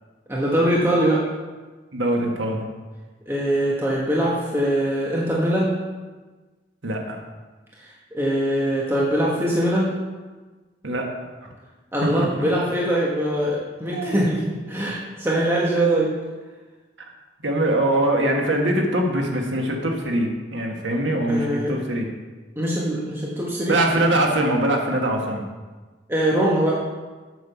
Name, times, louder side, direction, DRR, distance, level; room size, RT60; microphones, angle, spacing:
voice 1, 0.3-1.2 3.3-5.7 7.8-9.9 11.9-16.1 21.0-21.8 22.5-23.8 26.1-26.8, right 1 dB, 15° right, -6 dB, 1.4 m, -22 dB
voice 2, 1.9-2.7 6.8-7.2 10.8-11.1 11.4-11.5 12.0-12.3 13.9-14.2 17.4-22.1 23.7-25.4, right 1 dB, 85° right, 1 dB, 1.6 m, -22 dB
7.9 x 6.7 x 7.0 m, 1.3 s
head